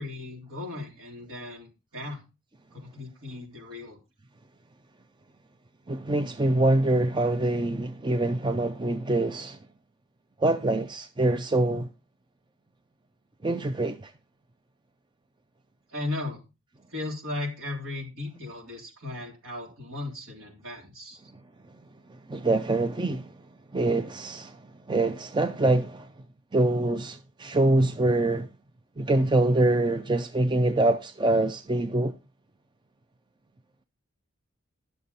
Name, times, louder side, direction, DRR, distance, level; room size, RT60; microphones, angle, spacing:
voice 1, 0.0-2.2 2.7-4.0 15.9-16.4 16.9-21.2, left 2 dB, 70° right, 3.4 m, -36 dB
voice 2, 5.9-9.6 10.4-11.9 13.4-14.0 22.3-23.3 23.7-24.5 24.9-26.1 26.5-28.5 29.0-32.1, right 2 dB, 20° right, 0.5 m, -24 dB
11.0 x 6.6 x 4.1 m
head